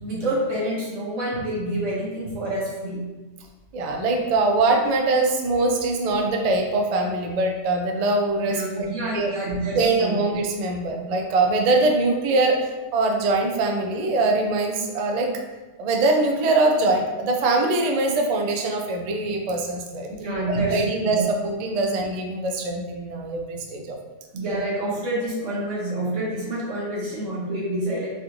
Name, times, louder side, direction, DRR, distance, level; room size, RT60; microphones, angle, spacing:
voice 1, 0.0-3.0 8.4-10.1 20.2-21.2 24.3-28.1, right 1 dB, 90° right, -5 dB, 1.5 m, -27 dB
voice 2, 3.7-9.3 9.7-15.3 15.8-20.1 20.5-24.0, right 2 dB, 60° right, 2 dB, 0.4 m, -23 dB
4.2 x 2.6 x 2.9 m, 1.2 s
omnidirectional pair, 1.3 m